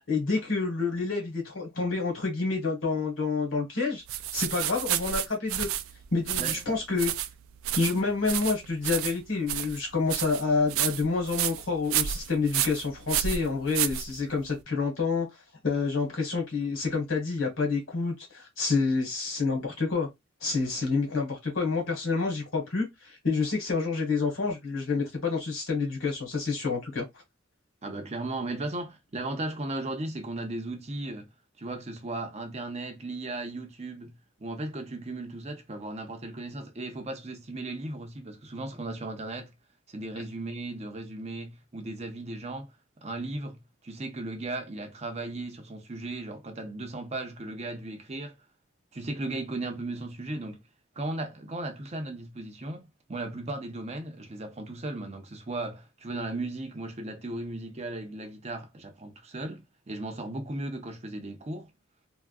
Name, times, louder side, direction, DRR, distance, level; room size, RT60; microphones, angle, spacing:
voice 1, 0.1-4.0 4.3-5.7 6.1-7.1 7.8-15.3 15.6-20.1 20.4-27.0, left 4 dB, 80° left, 1.4 m, -28 dB
sound 1, 4.1-14.6, right 11 dB, 90° right, 0.3 m, -31 dB
voice 2, 6.4-6.8 27.8-31.3 31.6-39.5 39.9-42.7 43.0-48.4 48.9-50.6 51.0-61.7, right 2 dB, 30° right, 0.6 m, -36 dB
3.5 x 2.2 x 2.3 m
head